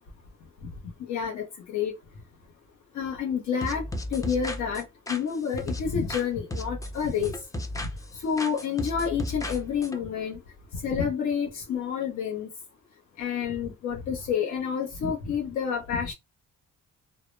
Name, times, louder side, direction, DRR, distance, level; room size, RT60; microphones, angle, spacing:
voice 1, 1.0-1.5 1.7-1.9 2.9-4.8 5.1-7.4 7.7-10.4 10.7-12.5 13.2-16.1, left 7 dB, 70° left, 0.7 m, -29 dB
sound 1, 3.6-6.2 6.5-8.1 8.4-10.0, left 1 dB, 10° left, 0.5 m, -34 dB
2.0 x 2.0 x 3.0 m
cardioid pair, 90°, 30 cm